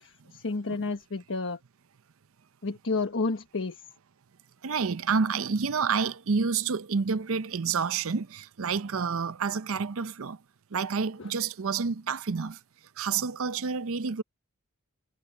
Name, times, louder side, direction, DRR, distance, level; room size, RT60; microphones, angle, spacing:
voice 1, 0.0-1.6 2.6-3.8 11.2-11.3, left 3 dB, 65° left, 1.3 m, -31 dB
voice 2, 4.6-10.4 10.7-12.6 13.0-14.2, right 5 dB, 70° right, 0.6 m, -29 dB
head